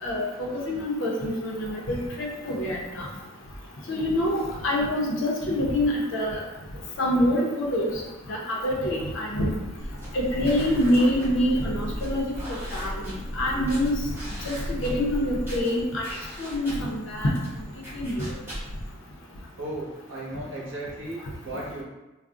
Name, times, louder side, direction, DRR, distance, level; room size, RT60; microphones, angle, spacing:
voice 1, 0.0-3.1 3.9-6.4 7.0-7.9 8.3-9.5 10.1-13.9 14.4-16.1 16.4-17.3 17.9-18.3, left 1 dB, 65° left, -2 dB, 0.6 m, -26 dB
sound 1, 9.8-18.9, equal, 10° right, 0.7 m, -40 dB
sound 2, 9.8-15.6, equal, 35° right, 0.3 m, -36 dB
voice 2, 19.6-21.8, right 1 dB, 65° right, -4 dB, 0.8 m, -35 dB
2.4 x 2.0 x 3.5 m, 1.0 s
head